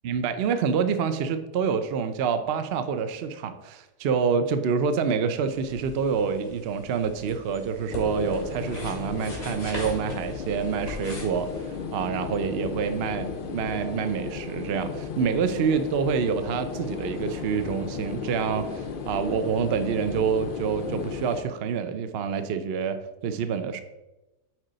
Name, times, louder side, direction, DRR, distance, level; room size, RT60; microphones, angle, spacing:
voice 1, 0.0-23.0 23.2-23.8, right 6 dB, 75° right, 9 dB, 0.5 m, -27 dB
sound 1, 5.5-11.6, left 1 dB, 55° left, 2.5 m, -40 dB
sound 2, 7.9-21.4, left 6 dB, 90° left, 0.4 m, -35 dB
9.3 x 4.4 x 3.9 m, 1.0 s
omnidirectional pair, 1.7 m